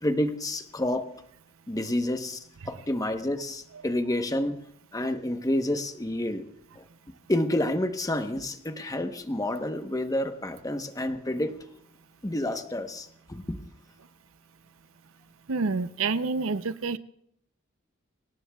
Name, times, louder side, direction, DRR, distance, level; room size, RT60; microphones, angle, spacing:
voice 1, 0.0-1.1 1.7-4.6 4.9-6.4 6.8-6.9 7.3-11.6 12.2-13.6, left 1 dB, 15° left, 7 dB, 1.0 m, -29 dB
voice 2, 15.5-17.0, right 4 dB, 70° right, 13 dB, 0.6 m, -28 dB
25.5 x 18.5 x 2.3 m, 0.72 s
head